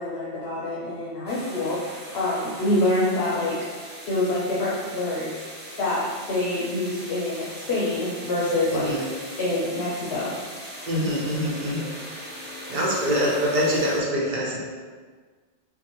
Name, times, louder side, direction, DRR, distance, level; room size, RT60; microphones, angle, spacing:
voice 1, 0.0-1.8 2.1-3.6 4.1-5.4 5.8-8.9 9.4-10.3, left 2 dB, 75° left, -6 dB, 1.0 m, -26 dB
sound 1, 1.3-14.0, equal, 10° right, 0.6 m, -40 dB
voice 2, 8.7-9.1 10.9-11.9 12.7-14.6, equal, 50° right, -4 dB, 1.0 m, -24 dB
6.0 x 2.3 x 3.0 m, 1.5 s
omnidirectional pair, 1.1 m